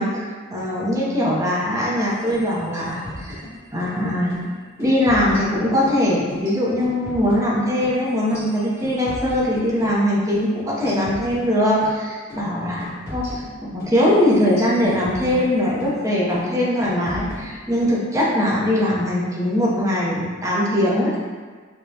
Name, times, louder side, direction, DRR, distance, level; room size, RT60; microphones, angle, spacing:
voice 1, 0.0-3.4 3.7-4.4 4.8-13.3 13.6-21.2, left 1 dB, 15° right, -5 dB, 0.6 m, -21 dB
sound 1, 2.2-4.0 4.3-4.5 4.8-6.0 6.3-10.0 10.3-10.5 10.8-12.0 12.3-12.5 12.8-16.0 16.3-16.5 16.8-18.0, left 1 dB, 15° left, 1.4 m, -37 dB
4.9 x 2.2 x 2.7 m, 1.5 s
head